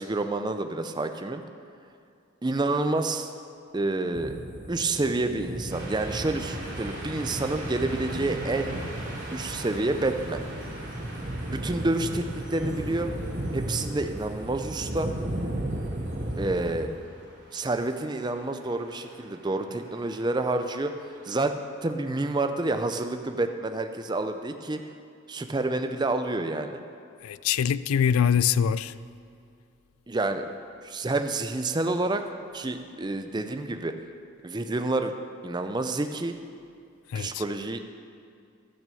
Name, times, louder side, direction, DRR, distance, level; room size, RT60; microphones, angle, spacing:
voice 1, 0.0-1.4 2.4-3.3 3.7-4.3 4.7-8.8 9.3-10.4 11.5-13.1 13.5-15.1 16.4-16.9 17.5-20.9 21.2-24.8 25.3-26.8 30.1-30.5 30.8-32.2 32.5-33.9 34.4-35.1 35.4-36.4 37.1-37.8, right 2 dB, 20° right, 0.4 m, -28 dB
sound 1, 4.1-16.9, right 1 dB, 35° right, 0.9 m, -35 dB
sound 2, 5.7-21.4, right 1 dB, 55° right, 3.2 m, -45 dB
voice 2, 27.2-28.9 37.1-37.4, left 8 dB, 85° left, 0.4 m, -24 dB
14.0 x 6.1 x 6.9 m
head